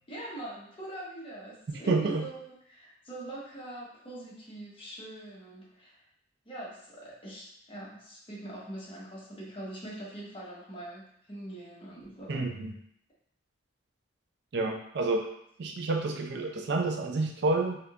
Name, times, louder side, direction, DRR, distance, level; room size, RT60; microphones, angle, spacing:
voice 1, 0.1-2.4 2.7-6.0 6.4-12.5, right 1 dB, 30° left, -5 dB, 0.9 m, -43 dB
voice 2, 1.9-2.3 12.3-12.7 14.5-15.2 15.6-17.8, right 3 dB, 65° right, 3 dB, 0.4 m, -29 dB
3.4 x 2.7 x 2.4 m, 0.71 s
head